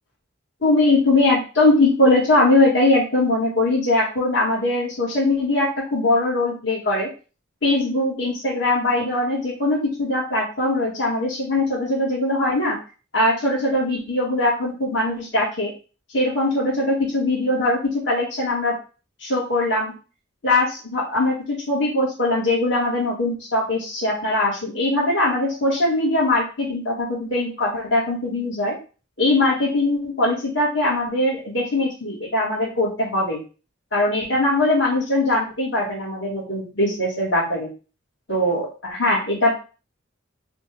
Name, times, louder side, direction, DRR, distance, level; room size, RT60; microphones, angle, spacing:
voice 1, 0.6-7.1 7.6-12.8 13.1-15.7 16.1-18.8 19.2-19.9 20.4-28.7 29.2-33.4 33.9-37.7 38.3-39.5, left 2 dB, 65° left, -5 dB, 1.8 m, -21 dB
4.9 x 2.4 x 3.4 m, 0.34 s
head